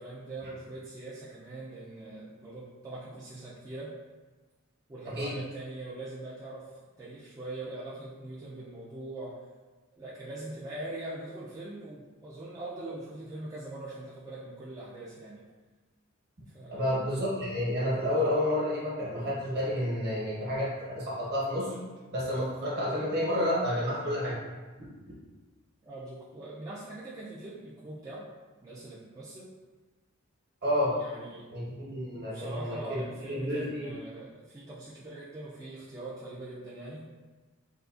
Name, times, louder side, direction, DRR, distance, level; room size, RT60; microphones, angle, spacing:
voice 1, 0.0-4.0 4.9-6.7 7.0-9.4 9.9-15.5 16.5-16.9 25.8-28.3 28.6-29.5 30.9-31.5 32.1-37.1, right 2 dB, 15° right, -8 dB, 0.3 m, -42 dB
voice 2, 16.7-21.7 22.1-24.4 24.8-25.1 30.6-30.9 31.5-33.9, left 1 dB, 50° right, -6 dB, 1.0 m, -30 dB
3.5 x 2.3 x 2.4 m, 1.3 s
head